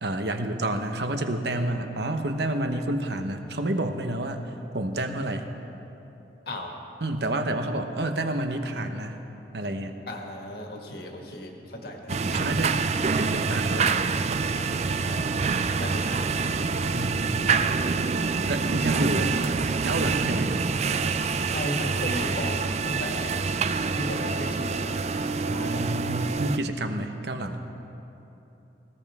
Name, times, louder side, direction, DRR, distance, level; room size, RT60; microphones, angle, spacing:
voice 1, 0.0-5.5 7.0-9.2 9.5-9.9 12.1-12.8 13.2-13.9 16.9-17.6 18.5-19.3 19.8-20.6 25.5-27.6, right 1 dB, 70° right, 6 dB, 1.0 m, -29 dB
voice 2, 10.1-12.1 15.0-15.3 15.7-16.4 21.5-23.5 23.9-24.9 25.5-25.8, equal, 60° left, 1 dB, 1.8 m, -35 dB
sound 1, 12.1-26.6, right 4 dB, 35° right, 0.4 m, -26 dB
19.5 x 16.5 x 3.6 m, 3.0 s
head